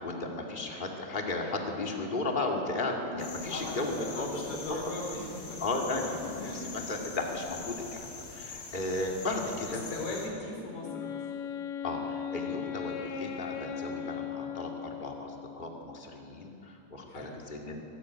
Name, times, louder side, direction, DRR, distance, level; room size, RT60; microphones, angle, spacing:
voice 1, 0.0-4.4 4.7-4.9 5.6-9.8 11.8-17.8, left 2 dB, 30° left, 1 dB, 1.0 m, -35 dB
sound 1, 3.2-10.3, left 4 dB, 85° left, 5.7 m, -44 dB
voice 2, 3.5-5.6 6.4-6.7 9.9-11.2 17.1-17.3, left 2 dB, 45° left, -1 dB, 5.4 m, -39 dB
Wind instrument woodwind instrument, 10.8-15.6, left 8 dB, 65° left, 2.5 m, -38 dB
23.5 x 14.0 x 9.7 m, 2.8 s
omnidirectional pair, 4.9 m